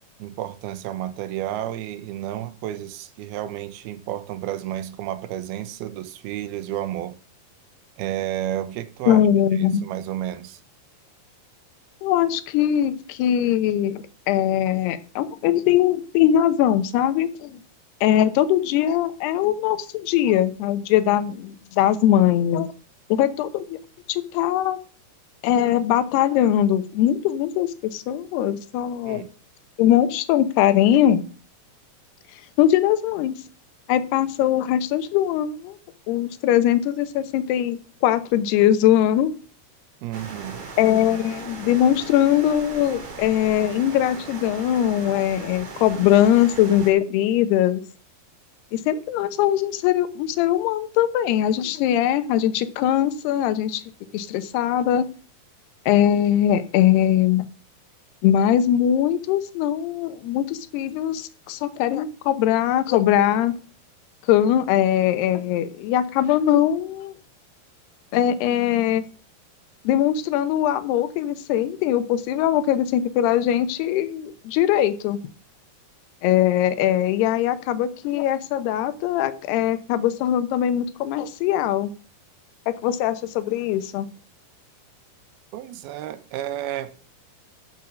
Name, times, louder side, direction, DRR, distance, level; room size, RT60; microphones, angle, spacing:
voice 1, 0.2-7.2 8.0-9.2 9.5-10.6 29.1-29.3 40.0-40.7 85.5-86.9, right 12 dB, 75° right, 2.8 m, -31 dB
voice 2, 9.1-9.8 12.0-17.6 18.0-22.7 23.1-23.8 24.1-24.8 25.4-29.2 29.8-31.2 32.6-33.4 33.9-35.8 36.1-39.3 40.8-47.8 48.7-53.8 54.1-55.1 55.9-57.5 58.2-63.5 64.3-67.1 68.1-69.0 69.8-75.2 76.2-81.9 82.7-84.1, left 11 dB, 85° left, 3.0 m, -21 dB
sound 1, 40.1-46.9, right 4 dB, 40° right, 2.7 m, -38 dB
12.5 x 6.3 x 6.2 m
omnidirectional pair, 4.6 m